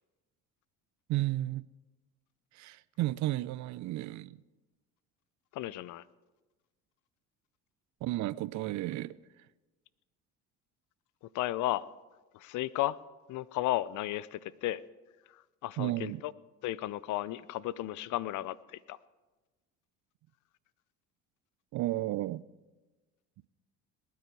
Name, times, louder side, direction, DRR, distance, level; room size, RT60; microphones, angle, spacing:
voice 1, 1.1-1.7 2.5-4.4 8.0-9.1 15.8-16.2 21.7-22.4, right 16 dB, 60° right, 0.5 m, -33 dB
voice 2, 5.5-6.0 11.3-11.9 12.3-13.0 13.3-14.8 15.3-16.3 16.6-19.0, left 15 dB, 65° left, 0.6 m, -34 dB
20.0 x 9.4 x 4.7 m
supercardioid pair, 80°, 33 cm